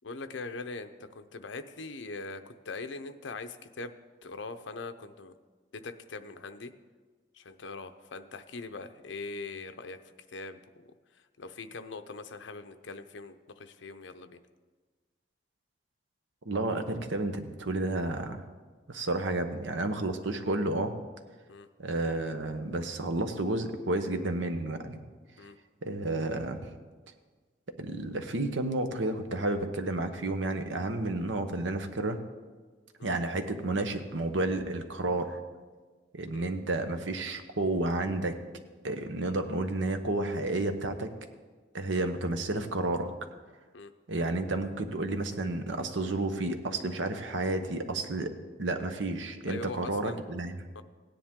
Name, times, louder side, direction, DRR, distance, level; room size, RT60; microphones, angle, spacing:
voice 1, 0.0-3.9 4.2-5.3 5.7-6.7 7.3-10.0 10.3-14.4 21.5-21.7 25.4-25.5 33.0-33.1 36.3-36.5 41.9-42.1 43.7-43.9 49.5-50.2 50.7-50.8, left 3 dB, 80° left, 9 dB, 0.7 m, -42 dB
voice 2, 16.4-18.4 18.9-21.0 21.8-25.0 25.8-26.8 27.8-32.2 33.0-35.4 36.1-38.4 38.8-41.1 41.7-43.1 44.1-48.3 48.6-50.6, right 2 dB, 80° right, 7 dB, 1.0 m, -31 dB
16.5 x 10.0 x 3.7 m, 1.4 s
head